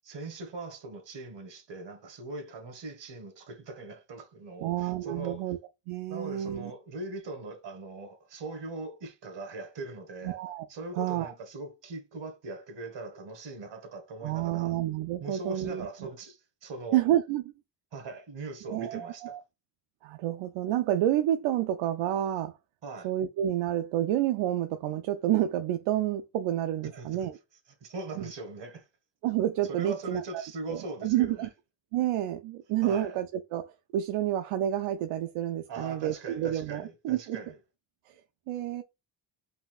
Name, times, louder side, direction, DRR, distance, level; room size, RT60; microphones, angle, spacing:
voice 1, 0.0-5.4 6.1-10.4 10.7-14.7 15.2-17.0 17.9-19.4 22.8-23.1 26.9-27.3 27.8-28.9 29.7-31.5 32.8-33.2 35.7-37.6, right 2 dB, 55° right, 1.5 m, -41 dB
voice 2, 4.6-5.6 5.9-6.7 10.2-10.7 11.0-11.3 14.2-16.1 16.9-17.4 18.6-19.4 20.0-22.6 23.0-27.4 28.2-28.3 29.2-30.4 30.7-31.5 31.9-37.4 38.1-38.2 38.5-38.8, right 12 dB, 85° right, 0.5 m, -29 dB
5.5 x 2.8 x 2.3 m
cardioid pair, 90°, 49 cm